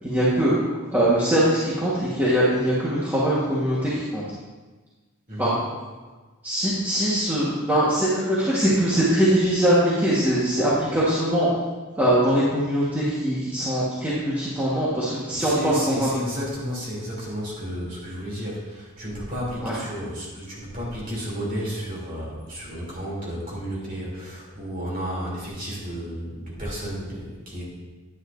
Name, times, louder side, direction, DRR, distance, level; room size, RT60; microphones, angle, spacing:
voice 1, 0.0-4.2 5.4-5.5 6.4-11.5 12.0-16.1 19.6-19.8, right 1 dB, 10° right, -9 dB, 1.3 m, -22 dB
voice 2, 5.3-5.6 15.4-27.7, equal, 40° right, -5 dB, 2.9 m, -32 dB
9.6 x 9.6 x 2.6 m, 1.3 s
head